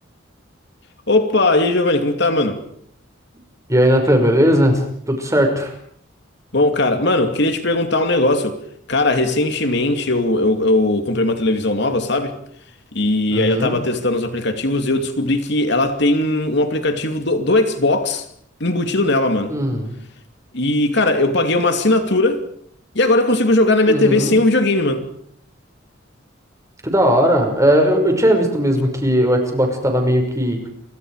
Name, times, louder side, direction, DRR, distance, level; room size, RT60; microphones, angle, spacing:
voice 1, 1.1-2.6 6.5-8.6 8.9-12.3 12.9-18.2 18.6-19.6 20.5-22.4 22.9-25.0, left 2 dB, 60° left, 2.6 m, -18 dB
voice 2, 3.7-5.7 13.3-13.8 19.5-19.9 23.9-24.4 26.8-30.7, equal, 15° right, 5.6 m, -17 dB
29.5 x 24.5 x 4.9 m
head